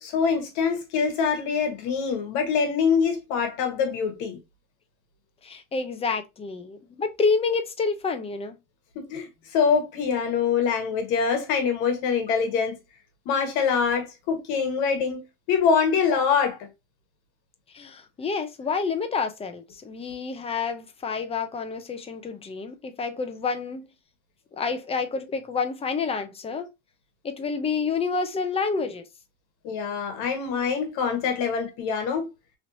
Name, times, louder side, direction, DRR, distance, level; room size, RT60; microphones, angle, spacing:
voice 1, 0.0-4.4 8.9-9.3 9.5-12.8 13.2-15.2 15.5-16.7 29.6-32.3, left 6 dB, 70° left, 1.3 m, -24 dB
voice 2, 5.4-8.6 17.7-23.9 24.5-26.7 27.2-29.0, left 4 dB, 20° left, 0.6 m, -28 dB
3.1 x 2.7 x 2.7 m
supercardioid pair, 125°, 31 cm